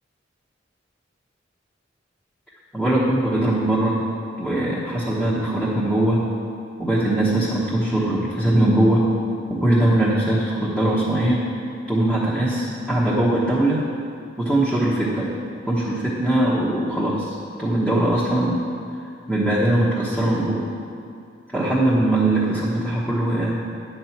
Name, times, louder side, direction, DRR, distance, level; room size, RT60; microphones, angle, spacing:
voice 1, 2.7-4.0 4.4-6.2 6.8-9.0 9.5-11.4 11.9-13.8 14.4-15.3 15.7-18.6 19.3-20.6 21.5-23.6, right 1 dB, ahead, -9 dB, 1.1 m, -21 dB
10.5 x 4.5 x 7.1 m, 2.5 s
head